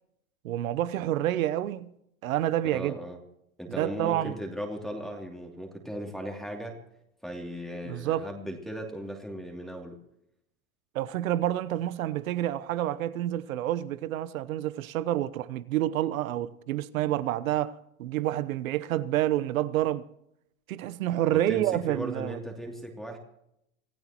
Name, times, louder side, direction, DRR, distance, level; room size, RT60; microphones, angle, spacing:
voice 1, 0.4-1.9 2.2-3.0 3.7-4.4 7.8-8.3 10.9-20.0 20.7-22.4, right 13 dB, 75° right, 1.0 m, -28 dB
voice 2, 2.7-3.2 3.6-6.8 7.2-10.0 21.3-23.2, equal, ahead, 2.9 m, -37 dB
27.0 x 15.5 x 3.0 m
hypercardioid pair, 110°, 42 cm